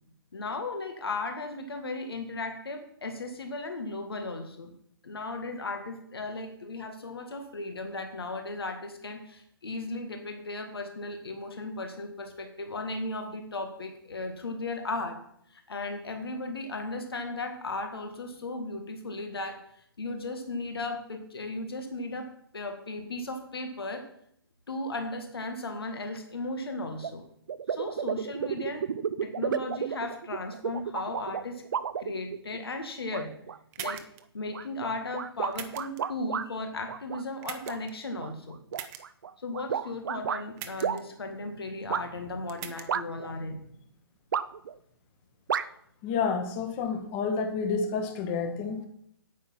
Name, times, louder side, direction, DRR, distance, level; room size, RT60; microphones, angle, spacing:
voice 1, 0.3-4.7 5.0-15.2 15.5-22.3 22.5-24.0 24.7-27.2 27.7-28.9 29.2-31.6 32.0-33.3 33.8-34.0 34.3-38.6 39.4-43.7, left 2 dB, 70° left, 5 dB, 1.8 m, -36 dB
sound 1, 27.0-27.1 27.5-32.6 33.1-33.6 33.8-34.0 34.5-36.5 36.9-37.8 38.2-40.4 40.8-41.0 41.9-42.0 42.9-43.3 44.3-44.7 45.5-45.6, right 7 dB, 55° right, 0.6 m, -32 dB
sound 2, 33.7-34.2 35.5-36.0 37.4-37.9 38.7-39.0 40.6-41.0 42.5-42.9, right 11 dB, 20° right, 0.8 m, -40 dB
voice 2, 46.0-48.9, left 5 dB, 25° left, 6 dB, 1.7 m, -29 dB
9.4 x 8.9 x 5.8 m, 0.70 s
figure-of-eight pair, 135°, 13 cm